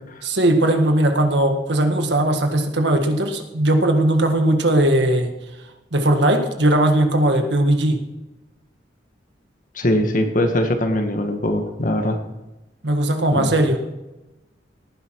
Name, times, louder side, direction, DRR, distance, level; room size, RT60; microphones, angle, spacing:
voice 1, 0.2-5.3 5.9-8.0 12.8-13.8, right 1 dB, 75° right, 5 dB, 1.8 m, -18 dB
voice 2, 9.7-12.2 13.3-13.5, left 1 dB, 50° left, 5 dB, 1.7 m, -21 dB
18.0 x 10.0 x 4.8 m, 1.0 s
head